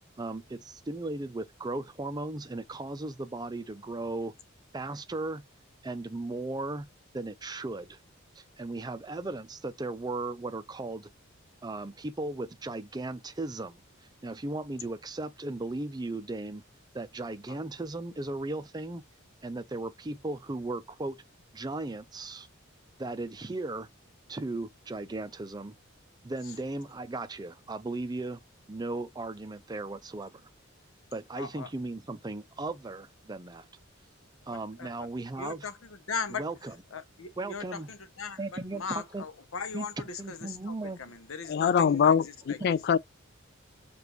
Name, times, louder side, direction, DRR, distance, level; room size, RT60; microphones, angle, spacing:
voice 1, 0.2-0.6 0.9-4.3 4.7-5.4 5.8-6.9 7.1-8.0 8.4-11.1 11.6-13.8 14.2-16.6 16.9-19.0 19.4-21.2 21.5-22.5 23.0-23.9 24.3-25.7 26.2-28.4 28.7-30.5 31.1-33.7 34.5-35.7 36.3-36.8 37.4-37.9 38.4-39.2 39.7-39.9 40.2-41.0, right 2 dB, 20° right, 0.5 m, -36 dB
voice 2, 31.3-31.7 34.8-34.9 35.4-35.7 36.1-36.4 36.9-38.4 38.7-40.4 40.6-42.1 42.5-42.6, left 5 dB, 80° left, 0.8 m, -38 dB
voice 3, 41.5-43.0, left 7 dB, 50° left, 0.3 m, -23 dB
5.0 x 2.5 x 3.0 m
head